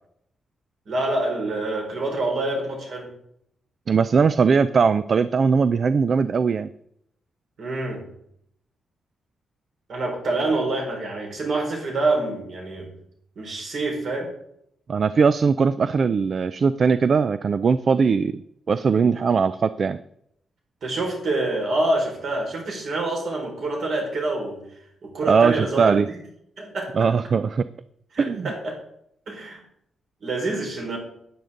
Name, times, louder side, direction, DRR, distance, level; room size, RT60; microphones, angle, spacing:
voice 1, 0.9-3.1 7.6-8.0 9.9-12.9 13.4-14.3 20.8-24.6 25.0-26.2 26.6-27.1 28.1-28.8 29.3-29.6 30.2-31.0, right 2 dB, 60° right, 0 dB, 4.7 m, -26 dB
voice 2, 3.9-6.7 14.9-18.4 18.7-20.0 25.3-26.1 26.9-27.7 28.2-28.5, right 5 dB, 40° right, 14 dB, 0.4 m, -20 dB
12.0 x 9.4 x 3.8 m, 0.73 s
wide cardioid pair, 145°, 0 cm